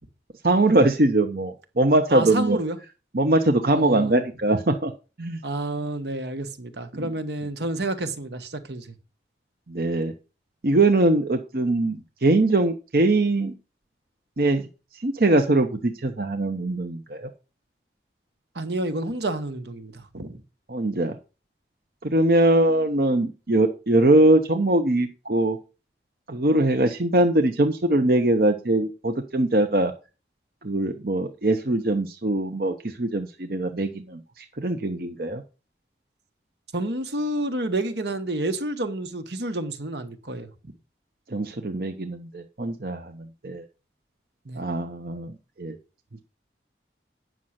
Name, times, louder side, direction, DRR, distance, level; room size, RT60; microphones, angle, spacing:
voice 1, 0.4-2.6 3.1-4.9 5.2-5.4 6.9-7.0 9.7-10.1 10.6-13.5 14.4-14.6 15.0-17.3 20.7-21.2 22.0-25.6 26.3-29.9 30.6-35.4 41.3-43.1 43.4-43.6 44.6-45.3 45.6-45.8, right 2 dB, 55° right, 0.9 m, -22 dB
voice 2, 2.1-2.8 3.7-4.2 5.4-8.9 18.5-20.4 36.7-40.5 44.4-44.6, right 1 dB, 75° right, 1.4 m, -29 dB
9.3 x 6.3 x 5.8 m
head